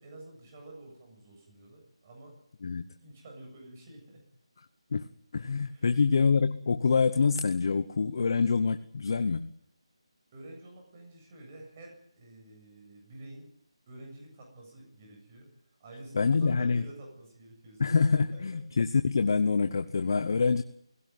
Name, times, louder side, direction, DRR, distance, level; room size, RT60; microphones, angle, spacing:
voice 1, 0.0-2.4 3.0-4.2 5.7-5.9 10.3-13.5 13.9-15.5 15.8-18.5, right 1 dB, 25° right, 1 dB, 7.4 m, -49 dB
voice 2, 5.3-9.5 16.1-16.8 17.8-20.6, left 5 dB, 45° left, 10 dB, 1.0 m, -26 dB
20.0 x 17.0 x 9.4 m, 0.72 s
figure-of-eight pair, 175°, 3 cm